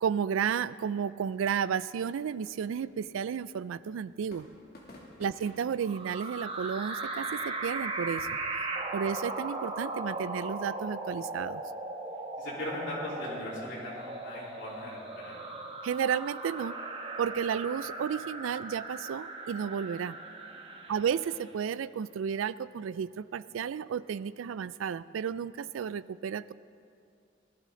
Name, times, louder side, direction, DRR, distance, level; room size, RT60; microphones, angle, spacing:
voice 1, 0.0-4.5 5.2-8.3 8.9-11.6 15.8-16.7 17.2-20.2 20.9-26.5, right 7 dB, 90° right, 17 dB, 0.3 m, -32 dB
sound 1, 1.9-8.5, left 1 dB, 50° left, 2.5 m, -57 dB
voice 2, 5.1-5.5 12.4-15.5 20.9-21.0, left 1 dB, 65° left, -8 dB, 3.6 m, -40 dB
sound 2, 5.8-21.5, right 2 dB, 30° right, 1.1 m, -38 dB
20.0 x 11.5 x 3.8 m, 2.5 s
head